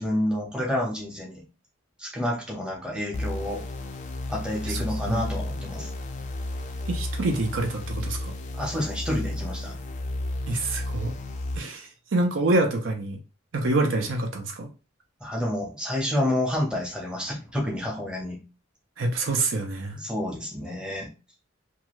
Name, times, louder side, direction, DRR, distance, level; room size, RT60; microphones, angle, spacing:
voice 1, 0.0-1.4 2.0-3.6 4.3-5.9 8.5-9.7 15.2-18.4 19.9-21.1, left 1 dB, 5° right, -2 dB, 0.8 m, -29 dB
sound 1, 3.1-11.6, left 1 dB, 35° left, 0.4 m, -33 dB
voice 2, 6.9-8.3 10.5-11.1 11.6-13.2 13.5-14.7 19.0-20.0, right 2 dB, 65° right, 3 dB, 0.6 m, -26 dB
2.6 x 2.3 x 3.0 m, 0.31 s
head